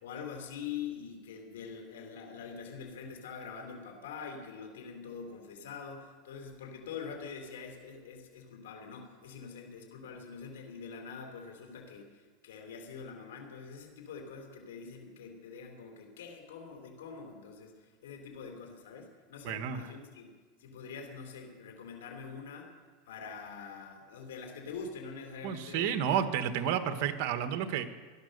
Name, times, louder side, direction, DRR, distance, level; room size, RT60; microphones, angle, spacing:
voice 1, 0.0-20.3 20.6-22.7 23.1-26.2 26.6-26.8, left 6 dB, 90° left, 2 dB, 3.5 m, -44 dB
voice 2, 19.4-19.8 25.4-27.9, right 9 dB, 60° right, 8 dB, 1.4 m, -31 dB
17.5 x 12.0 x 6.7 m, 1.5 s
supercardioid pair, 130°, 0 cm